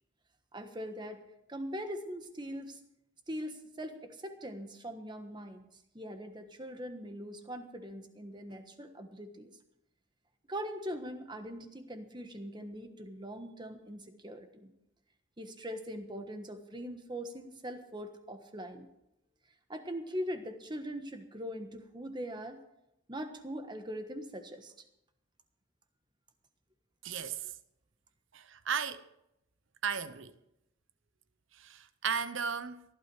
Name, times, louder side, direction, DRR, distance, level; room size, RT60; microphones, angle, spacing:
voice 1, 0.5-1.2 1.5-2.8 3.3-5.7 5.9-9.5 10.5-14.7 15.4-18.9 19.7-22.6 23.1-24.7, equal, 20° right, 1.3 m, -41 dB
voice 2, 27.0-27.5 28.3-29.1 29.8-30.3 31.6-32.8, right 6 dB, 65° right, 0.8 m, -35 dB
17.5 x 12.0 x 4.8 m
head